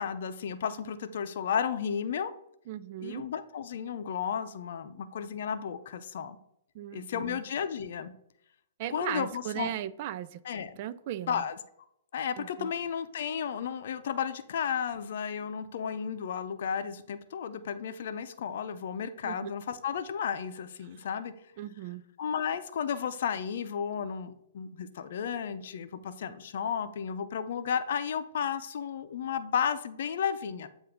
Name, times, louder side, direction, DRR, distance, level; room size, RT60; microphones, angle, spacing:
voice 1, 0.0-2.3 3.0-6.4 6.9-8.1 8.9-9.7 10.4-10.8 11.3-11.5 12.1-21.3 22.2-30.7, left 7 dB, 60° left, 10 dB, 0.6 m, -33 dB
voice 2, 2.7-3.2 6.7-7.4 8.8-11.4 12.4-12.7 19.2-19.5 21.6-22.0, right 12 dB, 45° right, 15 dB, 0.3 m, -37 dB
7.7 x 2.6 x 5.0 m, 0.77 s
hypercardioid pair, 130°, 0 cm